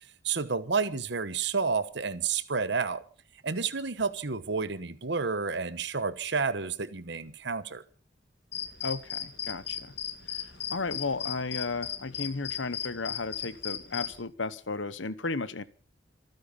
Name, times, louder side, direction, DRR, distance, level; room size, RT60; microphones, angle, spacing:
voice 1, 0.2-3.0 3.4-7.8, right 5 dB, 65° right, 1.1 m, -30 dB
sound 1, 8.5-14.2, left 9 dB, 60° left, 2.3 m, -37 dB
voice 2, 8.8-9.9 10.7-15.6, left 3 dB, 90° left, 1.1 m, -34 dB
26.5 x 9.5 x 5.4 m
head